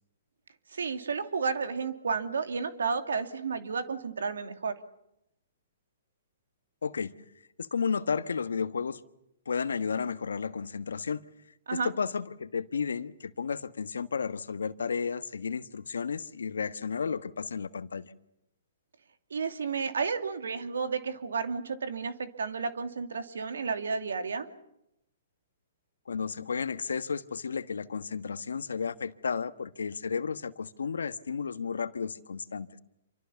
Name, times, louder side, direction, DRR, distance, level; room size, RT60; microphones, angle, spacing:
voice 1, 0.7-4.7 11.7-11.9 19.3-24.5, right 5 dB, 80° right, 2.7 m, -32 dB
voice 2, 6.8-7.1 7.6-9.0 9.5-11.2 11.7-18.1 26.1-32.8, left 6 dB, 85° left, 1.3 m, -33 dB
27.5 x 24.5 x 7.1 m
hypercardioid pair, 135°, 0 cm